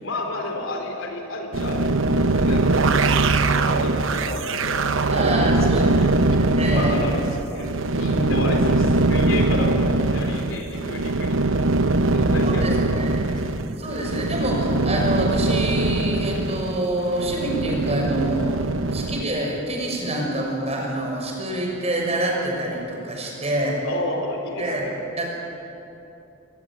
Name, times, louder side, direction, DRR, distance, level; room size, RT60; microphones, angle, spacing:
voice 1, 0.0-5.7 6.0-6.1 6.7-7.7 8.0-13.1 13.4-13.6 23.8-25.0, left 1 dB, 75° left, 3 dB, 4.1 m, -32 dB
Machinery AH, 1.5-19.2, right 2 dB, 80° right, 0.9 m, -22 dB
voice 2, 5.1-7.1 7.9-8.5 12.4-13.2 13.8-18.6 18.9-23.8 24.6-24.9 25.2-25.3, right 1 dB, 35° right, 0 dB, 6.3 m, -26 dB
23.5 x 20.5 x 9.1 m, 2.8 s
head